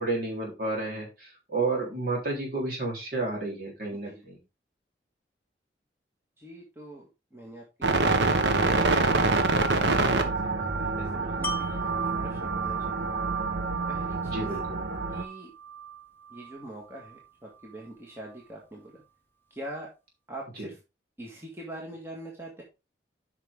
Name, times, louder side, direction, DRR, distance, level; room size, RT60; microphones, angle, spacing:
voice 1, 0.0-4.4 14.2-14.8 20.5-20.7, right 2 dB, 50° right, -2 dB, 3.7 m, -31 dB
voice 2, 3.9-4.2 6.4-7.1 7.3-7.6 9.1-9.5 10.2-11.9 12.2-13.1 13.9-14.5 15.1-15.5 16.3-18.9 19.5-19.9 20.3-20.7 21.2-22.6, right 1 dB, 15° right, -2 dB, 1.7 m, -43 dB
sound 1, 7.8-15.2, right 3 dB, 85° right, 1.2 m, -26 dB
Wind chime, 11.4-17.2 17.6-17.8, right 7 dB, 10° left, 0.6 m, -36 dB
9.0 x 5.9 x 3.7 m, 0.27 s
head